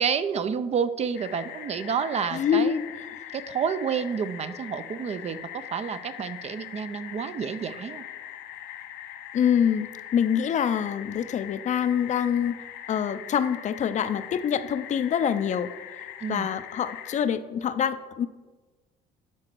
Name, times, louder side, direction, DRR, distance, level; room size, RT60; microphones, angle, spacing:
voice 1, 0.0-2.8 3.3-8.1 16.2-16.5, right 6 dB, 40° right, 12 dB, 0.5 m, -29 dB
sound 1, 1.1-17.2, left 11 dB, 85° left, 0.7 m, -42 dB
voice 2, 2.3-2.8 9.3-12.6 12.9-15.7 16.3-18.3, left 8 dB, 45° left, 12 dB, 0.5 m, -25 dB
11.5 x 4.9 x 4.5 m, 1.3 s
cardioid pair, 110°, 17 cm